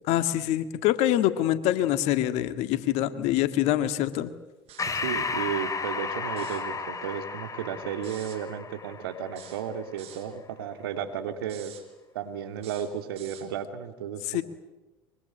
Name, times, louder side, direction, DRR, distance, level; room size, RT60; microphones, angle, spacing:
voice 1, 0.1-4.3 14.3-14.4, left 13 dB, 65° left, 11 dB, 1.8 m, -25 dB
sound 1, 4.7-5.1 6.3-6.7 8.0-8.4 9.3-10.3 11.4-11.9 12.6-13.5, right 11 dB, 55° right, 4.3 m, -48 dB
Breathing, 4.8-9.7, left 4 dB, 25° left, 3.3 m, -33 dB
voice 2, 4.9-11.7 12.1-14.4, right 8 dB, 80° right, 8 dB, 2.4 m, -34 dB
23.5 x 23.5 x 9.1 m, 1.1 s
hypercardioid pair, 70°, 12 cm